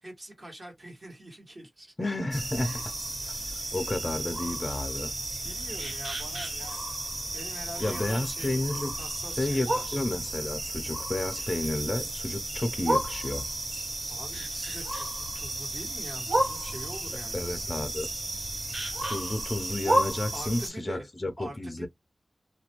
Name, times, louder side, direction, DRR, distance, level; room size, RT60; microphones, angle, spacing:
voice 1, 0.0-2.2 2.6-2.9 3.2-3.8 5.4-7.0 7.3-8.6 8.9-10.0 14.1-17.7 20.3-21.1 21.4-21.9, right 1 dB, 40° right, 1.2 m, -44 dB
voice 2, 2.0-2.9 3.3-3.4 3.7-5.1 7.8-9.0 9.4-13.4 17.3-18.1 19.0-21.9, left 2 dB, 25° left, 0.5 m, -31 dB
sound 1, 2.3-20.7, right 1 dB, 80° right, 1.5 m, -32 dB
2.4 x 2.2 x 2.9 m
wide cardioid pair, 105°, 0 cm